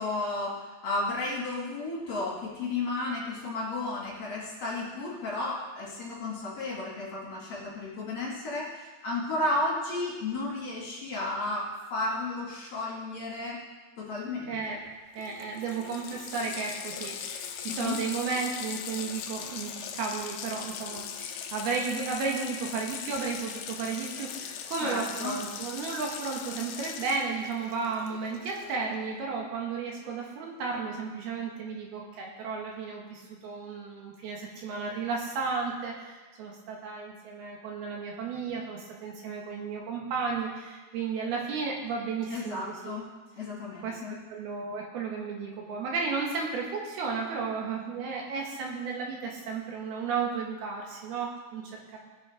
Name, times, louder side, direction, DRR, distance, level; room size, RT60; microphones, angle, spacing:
voice 1, 0.0-13.6 14.0-14.8 17.7-18.0 24.8-25.4 42.3-44.2, left 2 dB, 45° left, -5 dB, 3.0 m, -33 dB
voice 2, 14.5-14.8 15.2-43.0 43.8-44.0 44.3-52.0, right 5 dB, 75° right, -1 dB, 3.4 m, -33 dB
Water tap faucet, 14.9-15.0 15.2-28.9, left 8 dB, 80° left, 1.8 m, -40 dB
18.0 x 6.4 x 5.1 m, 1.3 s
omnidirectional pair, 4.6 m